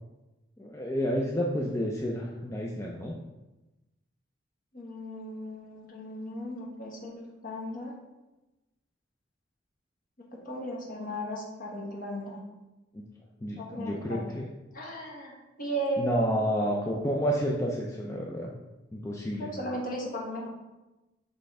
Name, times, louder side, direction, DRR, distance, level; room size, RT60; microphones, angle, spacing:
voice 1, 0.6-3.2 12.9-13.0 13.4-14.5 16.0-18.5 18.9-19.5, equal, 15° left, -2 dB, 0.5 m, -30 dB
voice 2, 4.7-7.9 10.4-12.4 13.6-14.3 14.7-16.4 19.4-20.5, right 1 dB, 45° left, -2 dB, 1.4 m, -36 dB
6.3 x 3.4 x 4.7 m, 1.0 s
head